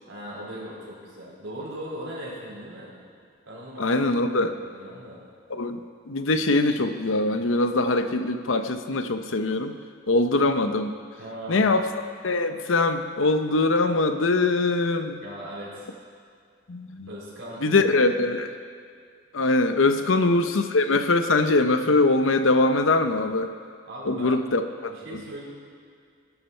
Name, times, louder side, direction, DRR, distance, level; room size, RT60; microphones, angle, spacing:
voice 1, 0.1-2.9 3.5-5.2 11.2-11.8 15.2-15.9 17.1-17.9 19.9-20.1 23.8-24.4 24.9-25.4, equal, 90° right, -5 dB, 4.3 m, -39 dB
voice 2, 3.8-4.5 5.5-9.8 10.1-10.9 11.5-11.9 12.2-15.2 16.7-17.1 17.6-18.5 19.3-23.5 24.1-25.2, left 2 dB, 85° left, 8 dB, 0.8 m, -22 dB
18.0 x 10.5 x 4.5 m, 2.2 s
head